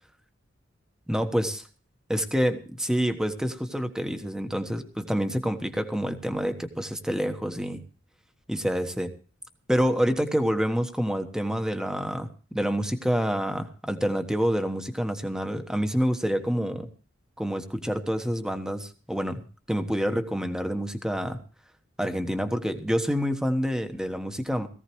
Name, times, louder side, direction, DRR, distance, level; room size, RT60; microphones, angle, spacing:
voice 1, 1.1-1.6 2.1-7.8 8.5-9.1 9.7-16.9 17.4-19.4 19.7-21.4 22.0-24.7, equal, 5° right, 7 dB, 1.3 m, -27 dB
18.5 x 15.5 x 3.1 m, 0.39 s
head